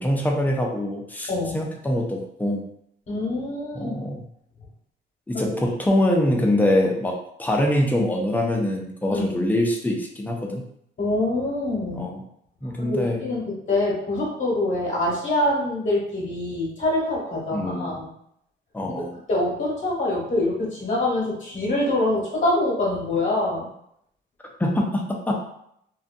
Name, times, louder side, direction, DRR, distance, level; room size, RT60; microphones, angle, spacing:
voice 1, 0.0-2.7 3.7-4.2 5.3-10.6 11.9-12.2 12.6-13.3 17.5-17.9 18.7-19.2 24.6-25.3, left 1 dB, 10° left, 0 dB, 0.5 m, -24 dB
voice 2, 3.1-4.0 5.3-5.5 9.1-9.4 11.0-12.1 12.8-18.1 19.3-23.7, left 1 dB, 40° left, -6 dB, 1.0 m, -25 dB
2.6 x 2.2 x 2.5 m, 0.74 s
cardioid pair, 90°, 20 cm